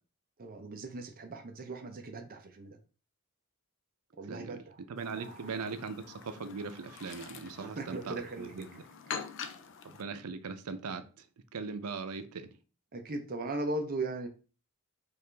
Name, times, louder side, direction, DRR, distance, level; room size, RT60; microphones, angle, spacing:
voice 1, 0.4-2.8 4.2-5.5 7.6-8.7 12.9-14.3, right 2 dB, 40° right, 0.6 m, -38 dB
voice 2, 4.3-4.6 4.9-8.8 9.8-11.3 11.5-12.5, right 4 dB, 90° right, 0.6 m, -40 dB
Chirp tweet, 5.0-10.0, left 6 dB, 60° left, 0.4 m, -45 dB
4.7 x 2.5 x 3.3 m
head